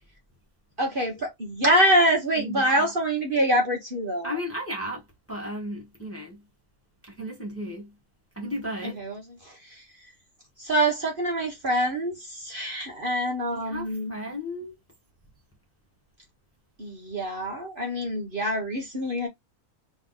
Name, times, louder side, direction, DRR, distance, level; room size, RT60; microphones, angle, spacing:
voice 1, 0.8-4.4 8.8-9.2 9.4-9.8 10.6-14.2 16.8-19.3, right 1 dB, 35° right, 1.3 m, -25 dB
voice 2, 2.4-2.9 4.2-6.4 7.0-7.9 8.3-9.0 13.5-14.8, equal, 10° left, 1.3 m, -35 dB
3.5 x 3.1 x 3.9 m
omnidirectional pair, 1.6 m